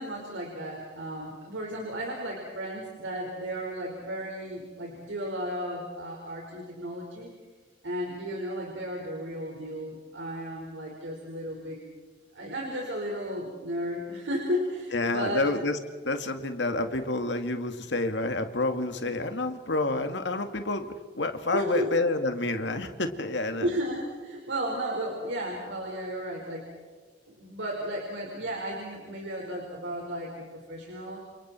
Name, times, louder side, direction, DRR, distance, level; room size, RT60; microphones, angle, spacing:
voice 1, 0.0-7.3 7.8-11.8 12.3-15.4 21.5-21.9 23.6-26.7 27.4-31.2, equal, 90° right, -1 dB, 5.0 m, -34 dB
voice 2, 14.9-15.8 16.0-20.9 21.1-23.7, left 2 dB, 75° left, 7 dB, 2.2 m, -28 dB
29.5 x 28.0 x 4.5 m, 1.5 s
head